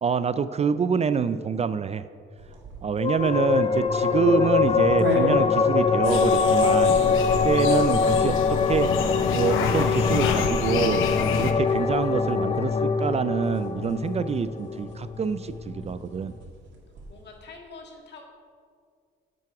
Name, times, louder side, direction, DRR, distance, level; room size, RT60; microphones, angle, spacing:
voice 1, 0.0-2.0 2.8-7.1 7.4-11.1 11.4-16.3, right 6 dB, 35° right, 13 dB, 0.3 m, -26 dB
sound 1, 2.4-17.3, right 3 dB, 65° right, 2.1 m, -39 dB
sound 2, 3.0-15.9, left 5 dB, 30° left, 0.4 m, -23 dB
sound 3, 6.0-11.5, left 6 dB, 85° left, 0.8 m, -29 dB
voice 2, 17.1-18.2, left 4 dB, 60° left, 1 dB, 1.9 m, -45 dB
9.3 x 7.6 x 4.8 m, 2.1 s
cardioid pair, 90°, 20 cm